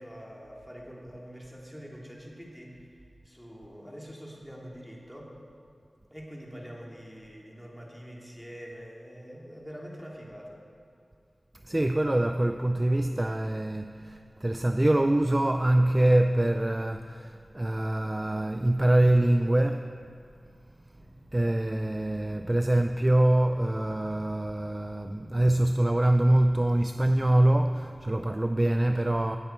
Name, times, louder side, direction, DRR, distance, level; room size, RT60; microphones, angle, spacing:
voice 1, 0.0-3.0 3.2-5.3 6.1-10.6 20.9-21.1, equal, ahead, -3 dB, 2.6 m, -45 dB
voice 2, 11.6-19.9 21.3-29.4, right 1 dB, 25° right, 7 dB, 0.4 m, -24 dB
17.0 x 9.3 x 4.5 m, 2.3 s
wide cardioid pair, 65°, 0 cm